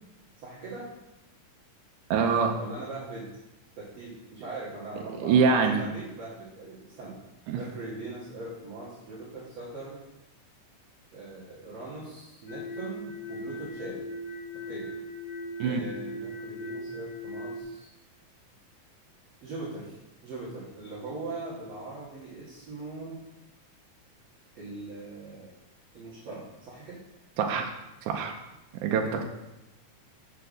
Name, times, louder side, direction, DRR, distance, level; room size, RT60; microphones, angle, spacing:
voice 1, 0.4-0.9 2.6-3.3 3.8-7.2 7.5-10.0 11.1-14.0 14.7-14.9 15.6-17.9 19.4-20.0 20.2-23.2 24.6-25.5 25.9-27.0, right 2 dB, 60° right, -8 dB, 2.4 m, -40 dB
voice 2, 2.1-2.5 5.2-5.8 7.5-7.6 15.6-15.8 27.4-27.7 28.1-28.3 28.8-29.2, right 5 dB, 80° right, 2 dB, 2.0 m, -24 dB
sound 1, 12.5-17.6, left 1 dB, 75° left, 1.0 m, -39 dB
6.3 x 4.6 x 6.5 m, 0.97 s
omnidirectional pair, 3.6 m